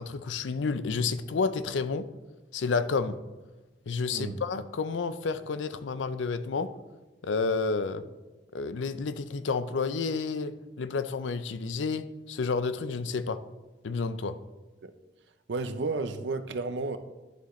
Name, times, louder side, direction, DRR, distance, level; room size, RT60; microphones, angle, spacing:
voice 1, 0.0-2.1 2.5-3.2 3.9-6.7 7.2-8.0 8.5-13.4 13.8-14.4, left 4 dB, 85° left, 13 dB, 0.5 m, -30 dB
voice 2, 15.5-17.0, right 3 dB, 75° right, 10 dB, 0.6 m, -32 dB
11.0 x 6.9 x 3.1 m, 1.2 s
head